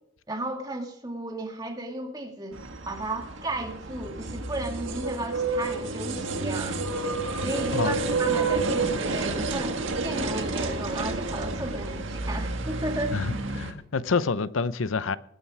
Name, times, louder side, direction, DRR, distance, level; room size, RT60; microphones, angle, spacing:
voice 1, 0.3-2.6 2.9-6.8 7.4-13.3, right 1 dB, 20° right, 2.0 m, -34 dB
sound 1, 2.5-13.7, right 3 dB, 80° right, 1.7 m, -30 dB
voice 2, 13.1-15.2, left 4 dB, 90° left, 0.7 m, -27 dB
18.5 x 8.8 x 4.8 m
head